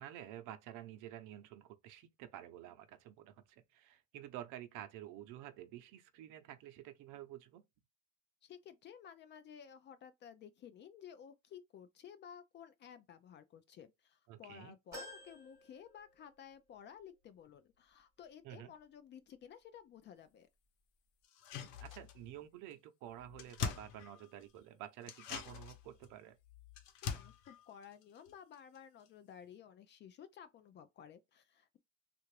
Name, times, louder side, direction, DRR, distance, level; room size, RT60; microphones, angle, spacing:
voice 1, 0.0-7.6 14.3-14.7 18.4-18.7 21.6-26.4, right 12 dB, 65° right, 0.7 m, -50 dB
voice 2, 8.4-20.5 27.0-31.8, left 8 dB, 35° left, 0.4 m, -55 dB
sound 1, 14.9-16.6 17.0-17.1 18.3-18.4, left 1 dB, 10° right, 1.8 m, -52 dB
sound 2, 21.2-22.4 22.7-22.8 23.1-24.6 25.0-28.8 29.1-29.2, left 7 dB, 75° left, 1.0 m, -44 dB
3.3 x 2.5 x 3.1 m
cardioid pair, 155°, 34 cm